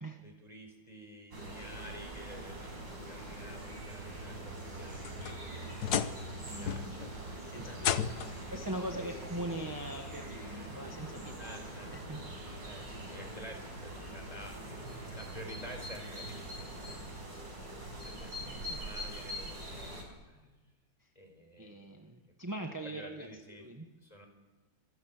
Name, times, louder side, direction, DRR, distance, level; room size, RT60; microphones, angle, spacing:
voice 1, 0.2-2.7 3.1-8.7 9.0-9.6 10.5-10.9 11.4-11.9 12.6-17.8 18.0-20.0 20.3-20.6 21.1-21.8 22.8-23.7 24.0-24.3, equal, 20° left, 4 dB, 4.7 m, -51 dB
sound 1, 1.3-20.0, right 1 dB, 70° right, 6.0 m, -43 dB
sound 2, 4.8-6.4 6.7-7.1 7.8-8.5 9.6-9.7 10.4-10.5 12.1-12.2, left 9 dB, 60° left, 1.3 m, -34 dB
voice 2, 6.3-7.1 7.5-11.6 11.9-12.6 18.4-18.9 21.0-21.1 21.6-23.9, right 1 dB, 10° right, 4 dB, 1.1 m, -42 dB
26.5 x 15.5 x 7.3 m, 1.2 s
omnidirectional pair, 2.2 m